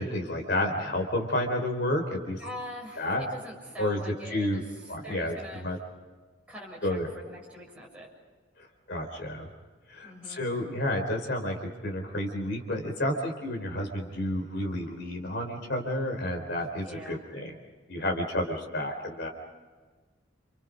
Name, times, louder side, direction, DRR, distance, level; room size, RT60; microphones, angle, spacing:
voice 1, 0.0-2.4 3.0-3.2 3.8-4.0 4.3-4.6 4.9-5.4 5.6-5.8 6.8-7.1 8.9-9.5 9.9-11.6 11.8-17.5 17.9-19.3, left 1 dB, 60° left, 2 dB, 4.1 m, -30 dB
voice 2, 2.4-5.8 6.5-8.1 10.0-10.4 16.8-17.2, equal, 5° right, -3 dB, 7.2 m, -43 dB
30.0 x 29.0 x 5.3 m, 1.4 s
head